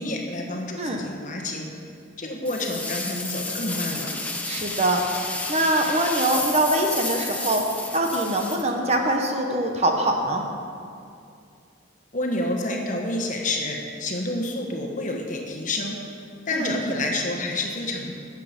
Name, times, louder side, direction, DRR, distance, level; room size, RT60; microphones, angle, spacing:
voice 1, 0.0-1.7 2.2-4.1 12.1-15.9 16.5-18.1, left 1 dB, 40° left, 0 dB, 1.3 m, -28 dB
sound 1, 2.4-9.2, left 2 dB, 5° left, 0.8 m, -31 dB
voice 2, 4.5-5.0 5.5-7.7 7.9-10.4 16.5-16.7, right 1 dB, 35° right, 2 dB, 0.9 m, -23 dB
12.5 x 8.4 x 5.2 m, 2.4 s
head